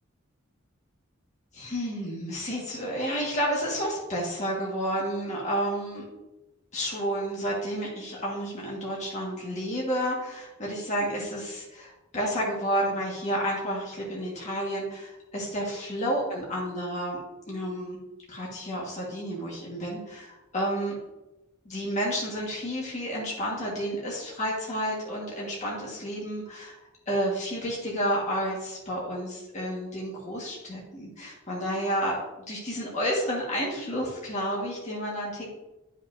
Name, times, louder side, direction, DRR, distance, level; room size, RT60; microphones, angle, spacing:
voice 1, 1.5-6.0 6.7-18.0 18.3-21.0 21.7-32.2 32.5-35.5, equal, 35° left, -4 dB, 1.7 m, -31 dB
11.5 x 5.6 x 2.7 m, 1.0 s
head